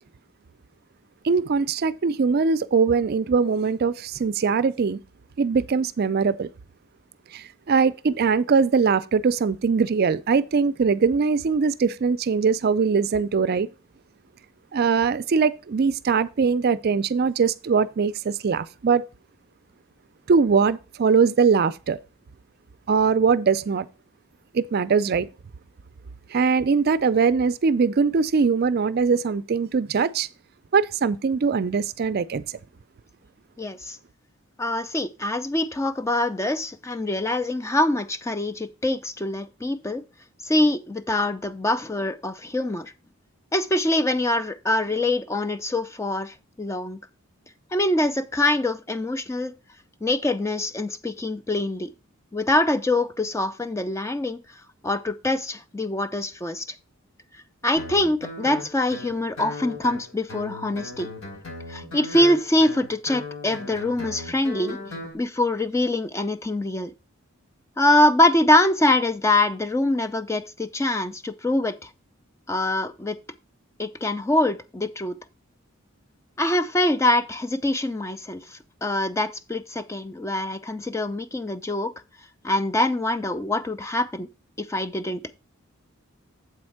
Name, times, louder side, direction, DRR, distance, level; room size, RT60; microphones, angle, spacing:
voice 1, 1.2-5.0 5.4-6.5 7.3-13.7 14.7-19.0 20.3-22.0 22.9-23.9 24.5-25.3 26.3-30.3 30.7-32.4, right 5 dB, 50° right, 0.4 m, -21 dB
voice 2, 33.6-34.0 34.6-40.0 40.4-42.9 43.5-47.0 47.7-49.5 50.0-51.9 52.3-54.4 54.8-56.7 57.6-61.1 61.7-64.8 65.1-66.9 67.8-71.9 72.5-73.2 73.8-75.2 76.4-81.9 82.4-84.3 84.6-85.2, left 1 dB, 15° left, 0.4 m, -24 dB
Guitar, 57.8-65.1, left 3 dB, 80° left, 4.3 m, -37 dB
7.8 x 4.4 x 6.3 m
head